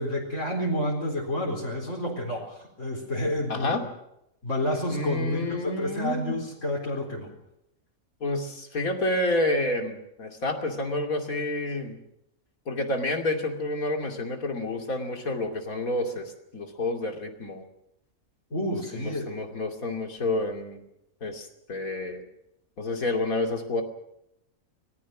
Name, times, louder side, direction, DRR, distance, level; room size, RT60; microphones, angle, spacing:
voice 1, 0.0-3.8 4.4-7.3 18.5-19.3, left 1 dB, 60° left, -1 dB, 4.6 m, -29 dB
voice 2, 3.5-3.8 4.9-6.4 8.2-12.0 12.7-17.6 18.9-20.8 21.2-22.2 22.8-23.8, left 2 dB, 80° left, 4 dB, 3.1 m, -29 dB
25.0 x 19.0 x 6.1 m, 0.81 s
omnidirectional pair, 1.5 m